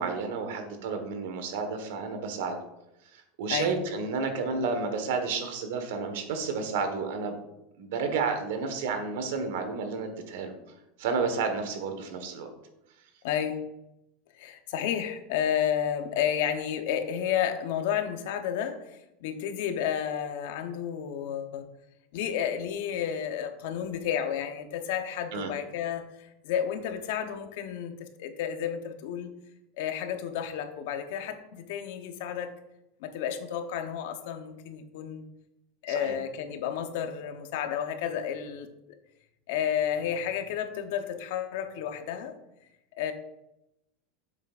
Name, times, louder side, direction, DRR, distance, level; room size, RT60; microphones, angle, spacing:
voice 1, 0.0-2.6 3.1-7.4 7.8-10.5 11.0-12.5 25.3-25.5 35.9-36.2, right 4 dB, 75° right, 6 dB, 1.3 m, -31 dB
voice 2, 3.5-3.8 13.2-13.7 14.3-21.6 22.1-29.3 29.8-32.5 33.0-35.3 35.8-38.7 39.5-42.3 43.0-43.1, left 9 dB, 70° left, 7 dB, 0.9 m, -31 dB
8.0 x 7.4 x 2.5 m, 0.89 s
supercardioid pair, 150°, 0 cm